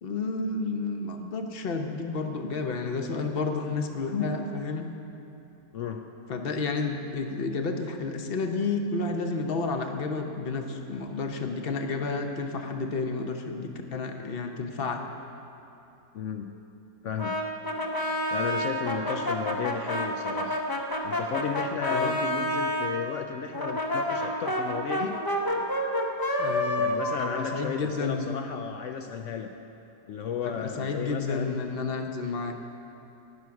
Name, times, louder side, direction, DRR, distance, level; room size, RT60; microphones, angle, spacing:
voice 1, 0.0-4.8 6.3-15.0 21.9-22.2 26.4-28.3 30.4-32.5, left 4 dB, 45° left, 5 dB, 0.8 m, -31 dB
voice 2, 5.7-6.1 16.1-16.5 17.0-17.4 18.3-20.6 21.0-25.2 26.8-29.5 30.1-31.6, left 7 dB, 75° left, 6 dB, 0.7 m, -34 dB
Brass instrument, 17.2-22.9 23.5-28.3, left 1 dB, 25° left, 0.4 m, -29 dB
18.5 x 6.3 x 5.9 m, 2.9 s
omnidirectional pair, 1.8 m